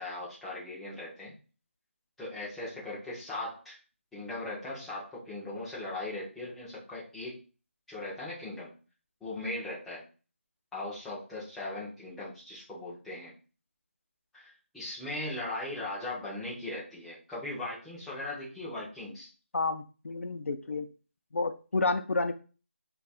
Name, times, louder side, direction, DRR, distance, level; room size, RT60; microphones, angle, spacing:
voice 1, 0.0-1.3 2.2-3.8 4.1-7.4 7.9-8.7 9.2-10.0 10.7-13.3 14.3-19.3, left 2 dB, ahead, -9 dB, 0.3 m, -39 dB
voice 2, 19.5-20.9 21.3-22.3, left 3 dB, 80° left, 8 dB, 0.4 m, -30 dB
2.6 x 2.3 x 4.0 m, 0.35 s
figure-of-eight pair, 170°, 7 cm